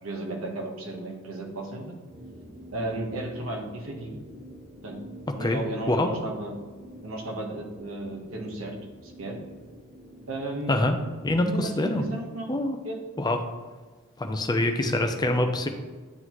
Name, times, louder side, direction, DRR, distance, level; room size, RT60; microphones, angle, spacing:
voice 1, 0.0-1.9 2.7-4.2 4.8-5.0 5.4-6.6 7.0-8.8 9.0-9.4 10.3-10.9 11.4-12.5 12.8-13.0, right 1 dB, 80° right, 0 dB, 1.2 m, -34 dB
sound 1, 2.1-11.1, equal, 35° right, 1.6 m, -47 dB
voice 2, 11.2-12.0 12.5-12.8 13.2-13.4 14.2-15.7, left 1 dB, 20° left, 5 dB, 0.6 m, -25 dB
9.4 x 4.0 x 3.0 m, 1.4 s
head